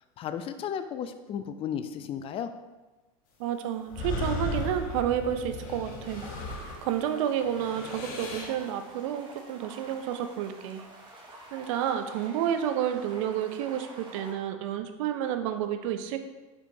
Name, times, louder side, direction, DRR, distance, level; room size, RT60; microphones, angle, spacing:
voice 1, 0.2-2.5, left 8 dB, 30° left, 9 dB, 0.4 m, -34 dB
voice 2, 3.4-6.3 6.8-10.9 11.5-16.2, right 10 dB, 65° right, 8 dB, 0.5 m, -30 dB
sound 1, 3.9-7.1 7.4-8.6, left 2 dB, 50° left, 0.9 m, -35 dB
sound 2, 6.0-14.3, right 1 dB, 25° right, 0.9 m, -49 dB
4.5 x 4.3 x 2.6 m, 1.2 s
hypercardioid pair, 95°, 18 cm